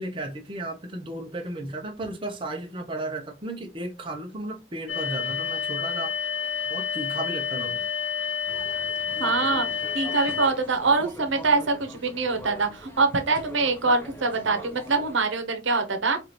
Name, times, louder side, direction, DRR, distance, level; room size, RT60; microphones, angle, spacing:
voice 1, 0.0-6.2 6.7-7.8, right 1 dB, 25° right, 0.6 m, -34 dB
sound 1, 4.9-10.5, left 7 dB, 70° left, 0.6 m, -29 dB
sound 2, 8.5-15.2, equal, 10° left, 0.7 m, -42 dB
voice 2, 9.2-9.7 9.9-16.2, right 3 dB, 75° right, 0.8 m, -24 dB
4.7 x 2.5 x 2.9 m
head